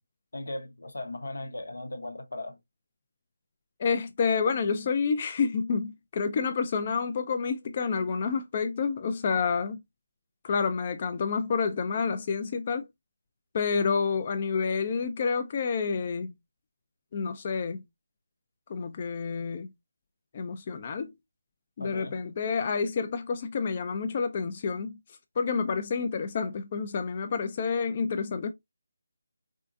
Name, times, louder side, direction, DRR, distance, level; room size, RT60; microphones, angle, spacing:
voice 1, 0.3-2.6 21.8-22.1, left 2 dB, 85° left, 0.8 m, -37 dB
voice 2, 3.8-9.8 10.4-12.9 13.5-16.3 17.1-17.8 18.7-19.7 20.3-21.1 21.8-24.9 25.4-28.5, left 5 dB, 35° left, 0.3 m, -29 dB
3.5 x 2.4 x 2.4 m
figure-of-eight pair, 160°, 0 cm